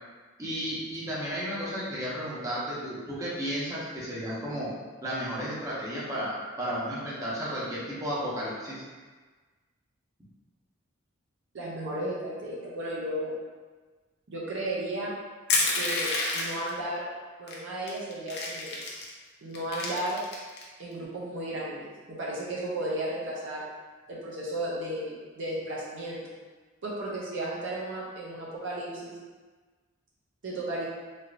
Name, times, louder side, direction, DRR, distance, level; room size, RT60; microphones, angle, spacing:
voice 1, 0.4-4.7 5.0-8.8, equal, 15° right, -8 dB, 0.8 m, -33 dB
voice 2, 11.5-13.3 14.3-15.1 15.7-17.1 17.4-18.8 19.4-20.2 20.8-23.6 24.1-26.2 26.8-29.2 30.4-30.9, right 1 dB, 60° right, -5 dB, 0.6 m, -34 dB
Crushing, 15.5-16.7 17.5-17.6 17.9-19.1 19.5-20.6, left 3 dB, 55° left, 0.6 m, -28 dB
3.4 x 2.7 x 2.5 m, 1.4 s
head